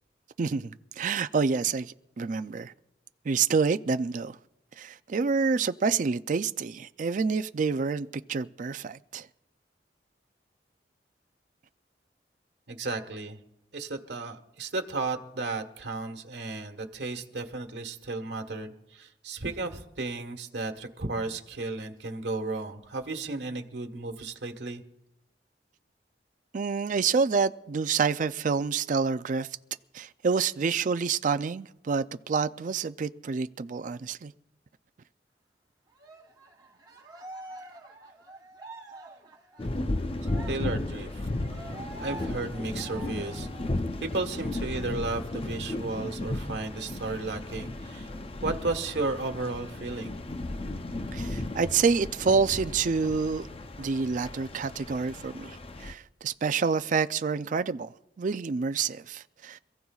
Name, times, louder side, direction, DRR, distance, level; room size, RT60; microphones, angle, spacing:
voice 1, 0.4-2.7 3.2-4.4 4.8-9.3 26.5-29.5 29.9-34.3 51.1-53.5 53.8-59.6, right 5 dB, 45° right, 0.4 m, -28 dB
voice 2, 12.7-13.4 13.7-24.8 40.5-41.3 42.0-43.5 44.0-48.1 48.4-50.2, right 3 dB, 75° right, 1.4 m, -34 dB
Cheering, 36.0-43.9 44.3-44.5 44.9-45.9, right 2 dB, 25° right, 2.6 m, -47 dB
sound 1, 39.6-55.9, left 2 dB, 35° left, 0.6 m, -35 dB
27.0 x 15.0 x 2.4 m
head